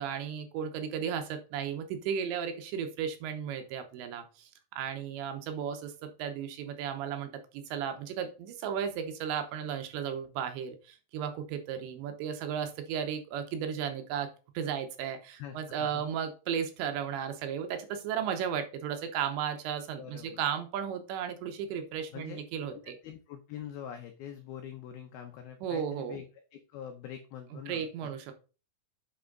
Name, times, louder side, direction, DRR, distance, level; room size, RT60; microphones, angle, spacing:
voice 1, 0.0-23.0 25.6-26.2 27.7-28.3, right 8 dB, 75° right, 7 dB, 3.1 m, -35 dB
voice 2, 15.4-16.0 20.0-20.5 22.1-22.4 22.7-26.3 26.5-28.3, left 9 dB, 85° left, 5 dB, 2.2 m, -44 dB
8.6 x 5.6 x 3.9 m, 0.34 s
omnidirectional pair, 5.5 m